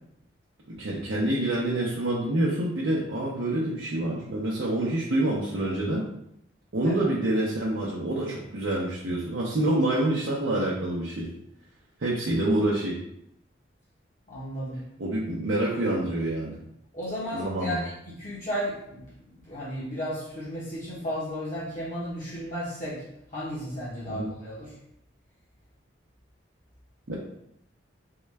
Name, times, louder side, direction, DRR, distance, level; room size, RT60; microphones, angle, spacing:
voice 1, 0.7-6.1 6.7-11.3 12.0-13.0 15.0-16.6 17.3-17.8 24.1-24.3 27.1-27.2, right 1 dB, 80° right, -5 dB, 0.6 m, -27 dB
voice 2, 14.3-14.8 16.9-23.0 23.3-24.7, equal, 45° left, -9 dB, 0.8 m, -34 dB
3.7 x 2.2 x 3.2 m, 0.77 s
head